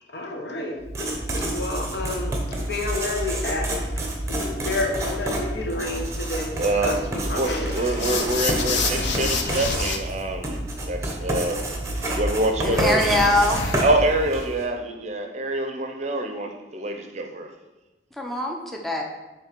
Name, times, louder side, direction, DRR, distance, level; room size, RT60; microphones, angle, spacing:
voice 1, 0.1-0.8 1.5-3.6 4.3-6.5 6.8-8.4 9.4-9.5, left 2 dB, 65° left, 1 dB, 1.1 m, -30 dB
Writing, 0.8-14.6, right 1 dB, 15° right, 0.9 m, -29 dB
voice 2, 6.5-11.6 12.1-13.2 13.8-17.5, right 1 dB, 40° right, 4 dB, 0.6 m, -26 dB
sound 1, 8.0-10.0 12.7-14.0, left 4 dB, 80° left, 0.7 m, -28 dB
voice 3, 12.6-13.6 18.1-19.0, left 1 dB, ahead, 0 dB, 0.6 m, -23 dB
7.8 x 3.2 x 4.5 m, 1.1 s
head